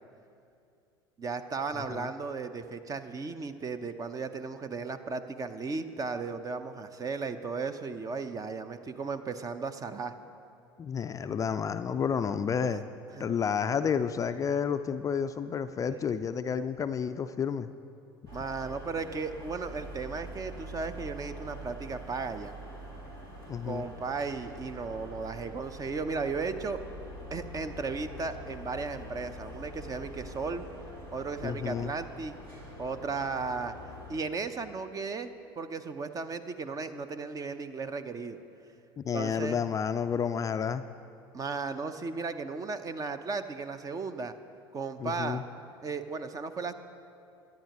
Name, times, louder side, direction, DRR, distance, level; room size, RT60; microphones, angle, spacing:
voice 1, 1.2-10.1 12.7-12.8 13.2-13.3 18.3-22.5 23.6-26.8 27.3-30.6 31.1-32.4 32.8-33.7 34.1-35.3 35.6-38.4 39.1-39.6 41.3-44.3 44.7-45.4 45.8-46.7, right 4 dB, 30° right, 10 dB, 0.8 m, -35 dB
voice 2, 1.7-2.1 10.8-12.8 13.2-17.7 23.5-23.8 31.4-31.9 39.0-40.8 45.0-45.4, left 7 dB, 25° left, 10 dB, 0.4 m, -30 dB
sound 1, 18.3-34.2, equal, 75° right, 3.3 m, -45 dB
23.0 x 10.5 x 3.0 m, 2.5 s
figure-of-eight pair, 70°, 13 cm